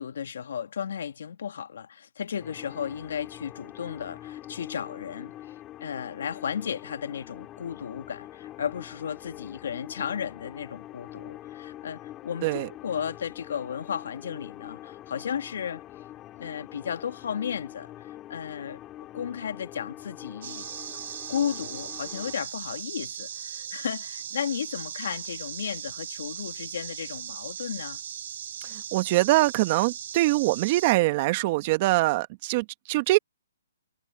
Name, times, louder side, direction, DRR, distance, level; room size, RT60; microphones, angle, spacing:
voice 1, 0.0-15.8 16.4-18.8 19.1-20.7 20.9-28.0, left 8 dB, 65° left, 1.9 m, -34 dB
sound 1, 2.4-22.4, left 14 dB, 20° left, 3.0 m, -44 dB
sound 2, 20.4-30.9, right 10 dB, 55° right, 7.4 m, -38 dB
voice 2, 28.9-33.2, right 19 dB, 35° right, 1.4 m, -23 dB
hypercardioid pair, 150°, 0 cm